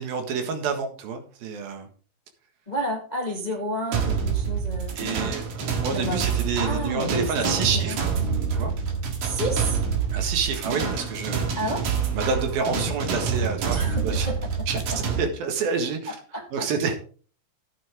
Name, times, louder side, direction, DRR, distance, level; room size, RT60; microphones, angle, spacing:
voice 1, 0.0-1.9 5.0-8.0 8.5-8.7 10.1-11.5 12.1-13.8 14.0-14.3 14.7-16.2 16.5-17.0, right 5 dB, 85° right, 6 dB, 3.5 m, -28 dB
voice 2, 2.7-5.0 6.0-6.2 6.6-8.0 9.2-9.8 11.5-11.8 13.7-15.0 16.1-16.7, equal, 85° left, 2 dB, 0.3 m, -31 dB
sound 1, 3.9-15.2, right 6 dB, 60° right, 3.1 m, -27 dB
13.0 x 9.0 x 3.6 m, 0.40 s
omnidirectional pair, 4.1 m